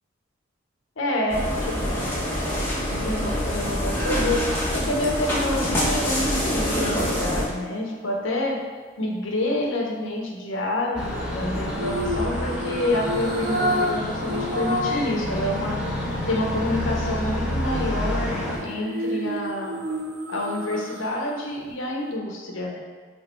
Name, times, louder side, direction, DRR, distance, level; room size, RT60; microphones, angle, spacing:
voice 1, 1.0-2.3 2.9-8.6 9.0-15.8 16.3-19.8 20.3-22.8, left 1 dB, 75° left, -1 dB, 1.0 m, -28 dB
sound 1, 1.3-7.5, equal, 10° left, 1.2 m, -25 dB
sound 2, 3.9-8.2 11.8-15.1 15.5-15.6 18.4-21.3 21.7-21.8, equal, 50° right, 0.7 m, -31 dB
sound 3, 10.9-18.6, equal, 5° right, 1.5 m, -29 dB
6.1 x 3.6 x 4.5 m, 1.4 s
head